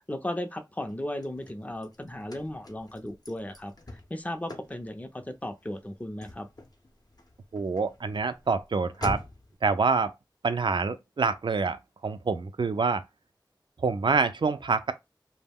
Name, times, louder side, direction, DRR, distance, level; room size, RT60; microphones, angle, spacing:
voice 1, 0.1-3.7 4.1-6.5, left 1 dB, 20° left, 0.5 m, -35 dB
Car / Slam, 0.9-9.6, left 2 dB, 55° left, 0.7 m, -45 dB
voice 2, 7.5-9.2 9.6-10.1 10.4-13.0 13.8-14.9, right 4 dB, 75° right, 0.4 m, -26 dB
2.2 x 2.1 x 3.5 m
wide cardioid pair, 45°, 8 cm